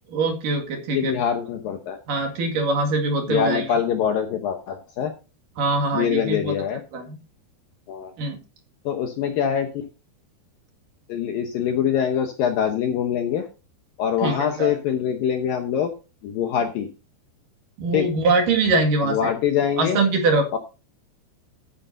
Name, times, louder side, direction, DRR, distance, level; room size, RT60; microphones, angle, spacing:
voice 1, 0.1-1.2 2.1-3.7 5.6-6.5 6.9-7.2 8.2-8.4 14.2-14.7 17.8-19.3 19.8-20.5, right 3 dB, 55° right, 4 dB, 3.2 m, -23 dB
voice 2, 0.9-2.0 3.3-5.1 5.9-6.8 7.9-8.1 8.9-9.7 11.1-13.5 14.0-15.9 16.2-16.9 17.9-18.1 19.0-20.0 20.5-20.6, left 8 dB, 70° left, 5 dB, 2.2 m, -24 dB
13.5 x 9.9 x 2.7 m, 0.30 s
omnidirectional pair, 5.3 m